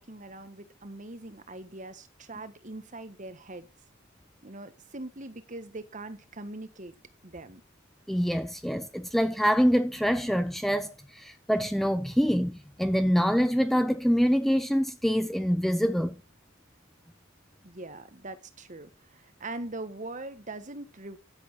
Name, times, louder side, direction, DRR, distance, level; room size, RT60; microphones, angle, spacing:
voice 1, 0.0-3.7 4.4-6.9 7.2-7.6 17.6-21.2, right 2 dB, 35° right, 1.4 m, -42 dB
voice 2, 8.1-16.2, equal, ahead, 0.7 m, -25 dB
13.5 x 8.1 x 6.0 m
head